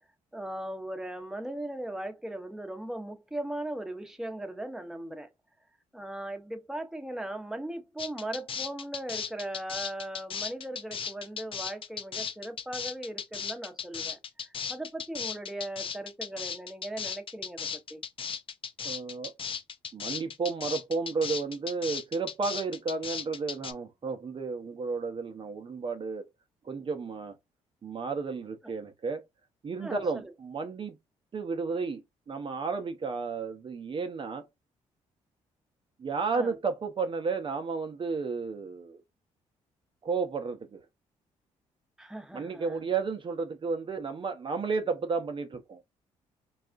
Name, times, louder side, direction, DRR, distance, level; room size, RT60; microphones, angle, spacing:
voice 1, 0.3-5.3 5.9-18.0 28.6-28.7 29.8-30.3 36.3-36.6 42.0-42.9, right 1 dB, 5° right, 0.9 m, -38 dB
sound 1, 8.0-23.7, left 7 dB, 45° left, 0.5 m, -36 dB
voice 2, 18.8-19.3 19.9-26.2 26.7-27.3 27.8-29.2 29.6-31.0 31.3-32.0 32.3-34.4 36.0-39.0 40.0-40.8 42.3-45.8, right 4 dB, 40° right, 0.7 m, -32 dB
4.0 x 2.3 x 2.5 m
supercardioid pair, 65°, 13 cm